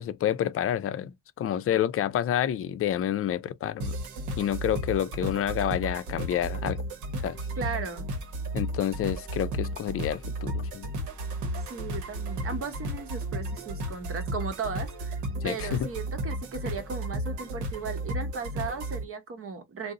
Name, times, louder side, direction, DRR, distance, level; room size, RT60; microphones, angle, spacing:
voice 1, 0.0-3.9 4.4-6.8 7.2-7.4 8.5-10.9 15.4-15.9, left 10 dB, 50° left, 0.4 m, -29 dB
sound 1, 3.8-19.0, right 1 dB, 80° right, 0.9 m, -33 dB
voice 2, 7.6-8.1 11.5-19.9, right 5 dB, 45° right, 0.9 m, -36 dB
2.5 x 2.0 x 3.7 m
cardioid pair, 90°, 30 cm